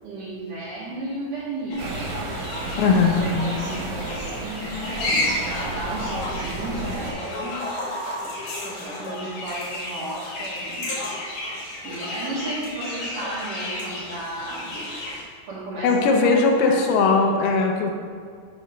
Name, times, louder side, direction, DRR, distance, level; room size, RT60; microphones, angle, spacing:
voice 1, 0.0-2.0 2.4-7.6 8.6-10.9 11.8-14.7 15.5-17.2, right 1 dB, 70° right, -9 dB, 2.0 m, -33 dB
sound 1, 1.7-15.2, left 1 dB, 65° left, 2.3 m, -32 dB
sound 2, 1.8-7.1, right 2 dB, 90° right, 3.1 m, -33 dB
voice 2, 2.8-3.3 15.8-17.9, left 4 dB, 85° left, 1 dB, 2.3 m, -19 dB
7.9 x 3.0 x 5.3 m, 2.1 s
omnidirectional pair, 5.4 m